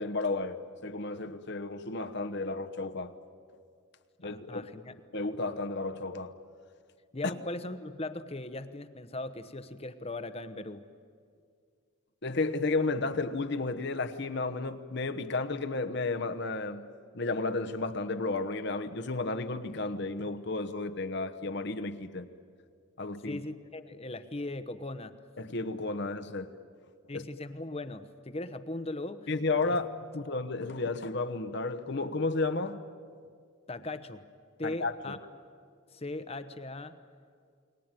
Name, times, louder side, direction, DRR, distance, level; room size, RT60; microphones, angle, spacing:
voice 1, 0.0-3.1 4.2-4.6 5.1-6.3 7.2-7.3 12.2-16.8 17.1-22.3 23.0-23.4 25.4-26.5 27.1-27.2 29.3-29.9 30.1-32.8 34.6-35.2, left 3 dB, 55° left, 1.1 m, -32 dB
voice 2, 4.2-5.0 7.1-10.9 23.3-25.2 27.1-29.3 29.6-29.8 30.3-30.4 33.7-34.2 34.6-35.2 35.9-37.0, left 2 dB, 30° left, 1.0 m, -39 dB
29.5 x 21.0 x 9.1 m
head